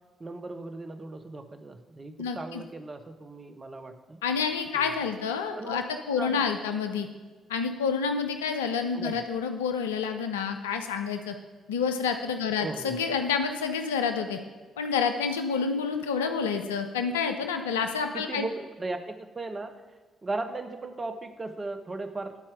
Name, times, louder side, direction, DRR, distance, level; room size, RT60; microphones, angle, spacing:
voice 1, 0.2-4.2 4.7-4.9 5.6-5.8 6.2-6.5 8.9-9.2 12.6-13.0 18.1-19.8 20.2-22.4, right 2 dB, 30° right, 7 dB, 0.8 m, -37 dB
voice 2, 2.2-2.6 4.2-7.1 7.5-11.3 11.7-14.4 14.8-18.5, left 6 dB, 80° left, 7 dB, 0.4 m, -28 dB
9.5 x 4.3 x 4.9 m, 1.4 s
figure-of-eight pair, 45°, 0 cm